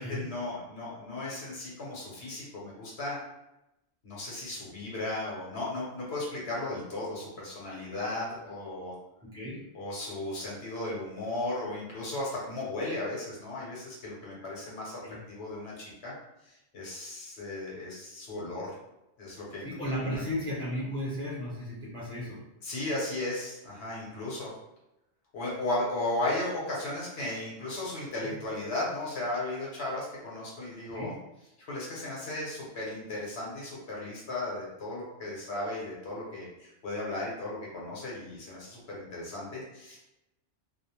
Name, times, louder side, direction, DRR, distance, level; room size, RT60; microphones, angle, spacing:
voice 1, 0.0-3.2 4.0-8.9 9.7-16.1 16.5-18.7 19.2-20.2 22.6-24.5 25.3-31.1 31.7-40.0, left 2 dB, 70° left, -5 dB, 1.0 m, -35 dB
voice 2, 9.3-9.6 15.0-15.2 19.6-22.4 28.2-28.3 30.9-31.1, equal, 5° left, -7 dB, 0.6 m, -34 dB
2.3 x 2.1 x 2.9 m, 0.89 s
omnidirectional pair, 1.2 m